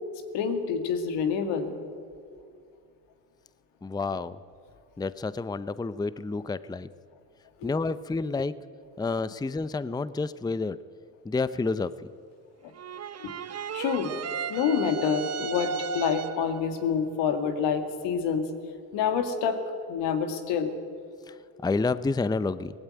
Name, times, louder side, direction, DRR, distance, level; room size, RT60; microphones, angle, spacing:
voice 1, 0.3-1.8 7.6-7.7 13.2-13.3 13.7-14.1 14.5-18.4 18.9-19.6 19.9-20.8, left 7 dB, 80° left, 7 dB, 2.2 m, -27 dB
voice 2, 3.8-4.4 5.0-6.9 7.6-8.5 9.0-10.8 11.2-11.9 21.3-21.4 21.6-22.7, left 3 dB, 10° left, 16 dB, 0.6 m, -29 dB
sound 1, 12.8-16.6, right 7 dB, 35° right, 0.9 m, -35 dB
18.0 x 15.5 x 9.5 m, 2.3 s
supercardioid pair, 70°, 42 cm